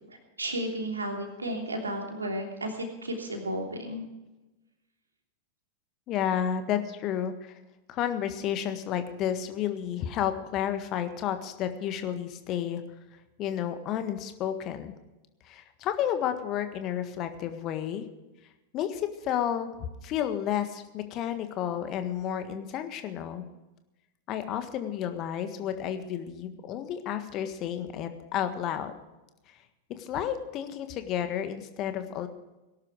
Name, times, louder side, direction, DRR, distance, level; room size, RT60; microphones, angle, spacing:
voice 1, 0.1-4.0, right 1 dB, 80° right, 2 dB, 3.1 m, -33 dB
voice 2, 6.1-7.6 7.9-12.8 13.4-14.9 15.5-18.1 18.7-19.7 20.0-23.4 24.3-29.0 29.9-32.3, left 10 dB, 35° left, 9 dB, 1.6 m, -31 dB
19.0 x 11.5 x 4.7 m, 1.1 s
figure-of-eight pair, 90°, 0 cm